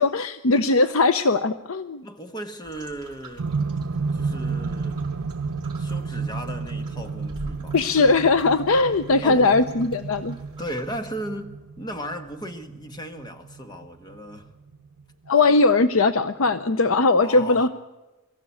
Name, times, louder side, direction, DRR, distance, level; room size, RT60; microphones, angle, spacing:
voice 1, 0.0-2.1 7.7-10.4 15.3-17.7, left 3 dB, 75° left, 0.7 m, -20 dB
voice 2, 2.0-3.5 4.1-5.0 5.7-7.8 9.2-9.6 10.6-14.5 17.2-17.7, equal, 20° left, 1.3 m, -36 dB
sound 1, 2.6-11.0, right 2 dB, 20° right, 4.8 m, -46 dB
sound 2, 3.4-15.5 16.5-16.6, right 4 dB, 85° right, 0.7 m, -32 dB
23.0 x 14.5 x 8.5 m
head